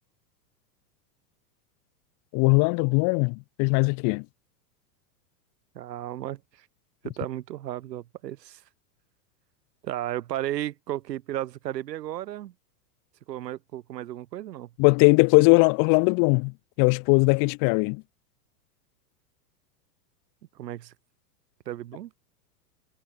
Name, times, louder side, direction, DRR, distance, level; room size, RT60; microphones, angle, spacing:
voice 1, 2.3-4.2 14.8-18.0, left 36 dB, 40° left, 1.0 m, -20 dB
voice 2, 5.7-6.7 7.0-8.6 9.8-12.5 13.3-14.7 20.5-20.9 21.7-22.1, right 13 dB, 75° right, 4.6 m, -34 dB
hypercardioid pair, 125°, 49 cm